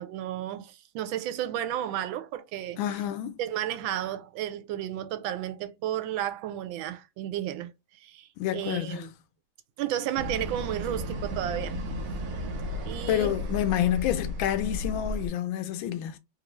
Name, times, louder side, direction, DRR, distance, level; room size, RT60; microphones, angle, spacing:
voice 1, 0.0-2.8 3.4-7.7 8.0-9.1 9.8-11.8 12.8-13.3, right 11 dB, 85° right, 1.4 m, -32 dB
voice 2, 2.8-3.4 8.4-9.1 13.1-16.2, left 11 dB, 90° left, 1.4 m, -28 dB
sound 1, 10.1-15.3, left 1 dB, 65° right, 0.9 m, -34 dB
3.4 x 2.5 x 3.0 m
omnidirectional pair, 2.1 m